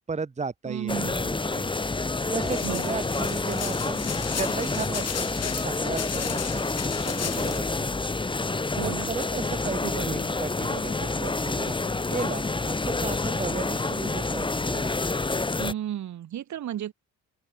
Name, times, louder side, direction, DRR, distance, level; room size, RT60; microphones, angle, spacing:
voice 1, 0.1-1.7 2.2-6.6 7.0-7.9 8.8-14.9, right 4 dB, 25° right, 1.3 m, -35 dB
voice 2, 0.6-1.2 2.6-3.0 8.8-9.2 9.6-10.4 15.6-16.9, right 11 dB, 70° right, 3.4 m, -34 dB
sound 1, 0.9-15.7, left 3 dB, 15° left, 1.4 m, -28 dB
sound 2, 2.4-7.6, left 9 dB, 55° left, 3.4 m, -36 dB
open air
cardioid pair, 90°, 30 cm